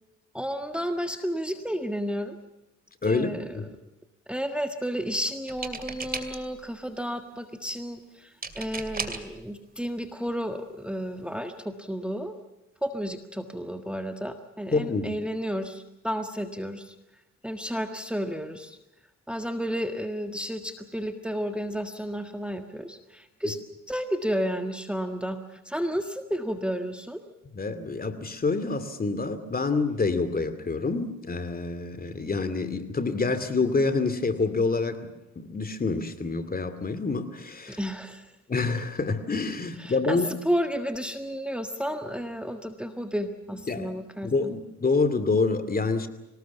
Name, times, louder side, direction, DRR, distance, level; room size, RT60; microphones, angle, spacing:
voice 1, 0.3-2.4 3.0-3.7 4.3-12.3 12.8-16.9 17.4-18.8 19.3-23.6 23.9-27.2 37.7-38.4 39.8-44.5, equal, 5° right, 6 dB, 1.6 m, -32 dB
sound 1, 5.5-6.6 8.4-9.3 10.3-10.4 10.8-11.0, right 4 dB, 30° right, 2.6 m, -35 dB
voice 2, 14.7-15.2 27.5-35.0 35.4-37.8 38.5-40.3 43.7-43.9 44.2-46.1, left 3 dB, 30° left, 11 dB, 2.6 m, -27 dB
25.0 x 19.0 x 7.2 m, 0.95 s
cardioid pair, 90°, 30 cm